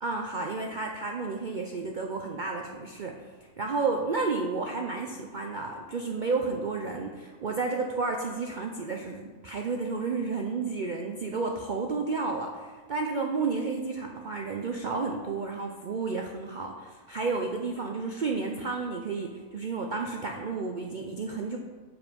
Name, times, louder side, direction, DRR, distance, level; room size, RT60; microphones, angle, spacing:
voice 1, 0.0-3.2 3.6-21.6, right 4 dB, 90° right, 2 dB, 0.4 m, -31 dB
7.3 x 5.2 x 5.2 m, 1.5 s
omnidirectional pair, 1.6 m